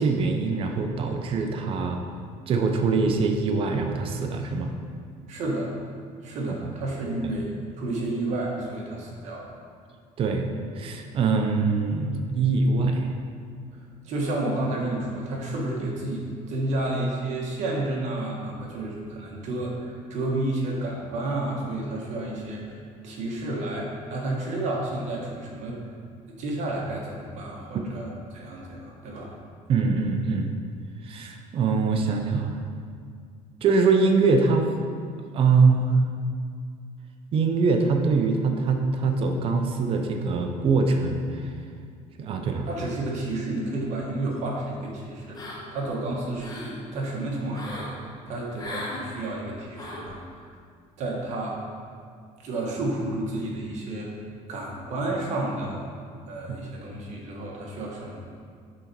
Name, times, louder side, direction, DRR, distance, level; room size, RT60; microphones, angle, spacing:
voice 1, 0.0-2.0 2.5-4.7 6.5-6.6 10.2-10.5 10.8-13.1 29.7-30.5 31.0-32.6 33.6-34.7 35.3-36.0 37.3-41.4 42.2-42.7 56.5-56.6, right 4 dB, 40° right, 4 dB, 0.6 m, -23 dB
voice 2, 5.3-5.7 6.2-9.5 13.8-22.8 23.0-25.8 26.3-29.3 42.6-46.6 46.9-50.5 51.0-51.6 52.4-54.2 54.5-55.8 56.3-58.3, right 2 dB, 55° right, -2 dB, 1.3 m, -31 dB
sound 1, 45.3-45.9 46.2-46.8 47.5-47.9 48.6-49.0 49.7-50.1, left 1 dB, 30° left, 1.1 m, -37 dB
6.1 x 4.0 x 4.5 m, 2.1 s
cardioid pair, 140°, 14 cm